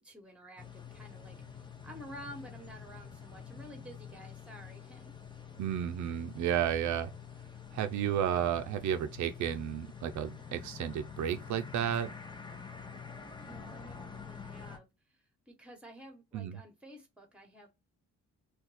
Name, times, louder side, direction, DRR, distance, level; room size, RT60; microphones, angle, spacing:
voice 1, 0.0-5.1 13.4-17.7, equal, 5° right, 1.1 m, -51 dB
sound 1, 0.6-14.8, left 6 dB, 15° left, 0.7 m, -47 dB
voice 2, 5.6-7.1 7.7-12.1 16.3-16.6, right 9 dB, 70° right, 0.5 m, -32 dB
2.5 x 2.3 x 4.1 m
cardioid pair, 90°, 30 cm